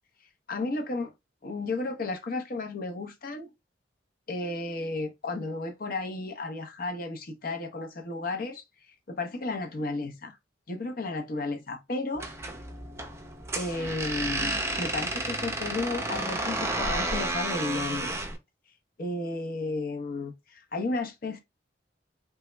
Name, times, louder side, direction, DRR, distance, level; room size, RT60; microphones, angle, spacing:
voice 1, 0.5-1.1 1.4-3.5 4.3-8.6 9.1-10.4 10.7-12.3 13.5-18.2 19.0-21.4, left 2 dB, 50° left, 0.6 m, -33 dB
sound 1, 12.1-18.4, right 2 dB, 15° right, 0.5 m, -31 dB
3.3 x 2.0 x 3.2 m
head